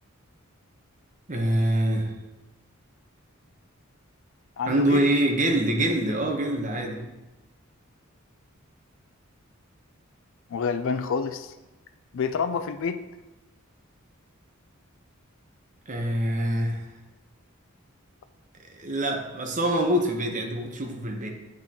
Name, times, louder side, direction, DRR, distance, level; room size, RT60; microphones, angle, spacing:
voice 1, 1.3-2.1 4.7-7.0 15.9-16.9 18.8-21.3, right 1 dB, 35° right, 2 dB, 1.0 m, -25 dB
voice 2, 4.6-5.1 10.5-11.5 12.1-13.0, left 5 dB, 65° left, 10 dB, 0.4 m, -28 dB
8.7 x 6.1 x 2.9 m, 1.0 s
head